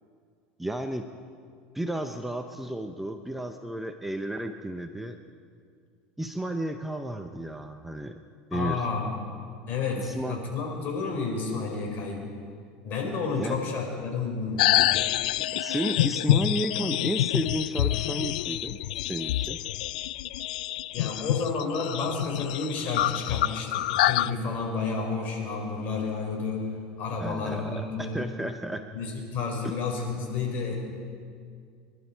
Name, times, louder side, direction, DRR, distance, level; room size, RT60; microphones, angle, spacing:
voice 1, 0.6-1.1 1.7-5.2 6.2-8.2 8.5-8.9 10.0-10.4 13.3-13.5 15.5-18.8 19.0-19.6 27.2-28.9, right 1 dB, 5° right, 6 dB, 0.8 m, -32 dB
voice 2, 8.5-9.1 9.7-12.2 12.8-14.8 20.9-26.7 27.0-28.2 28.9-30.7, left 4 dB, 50° left, 0 dB, 4.8 m, -31 dB
sound 1, 14.6-24.3, left 14 dB, 85° left, 0.3 m, -27 dB
25.5 x 12.0 x 4.6 m, 2.2 s
supercardioid pair, 115°, 4 cm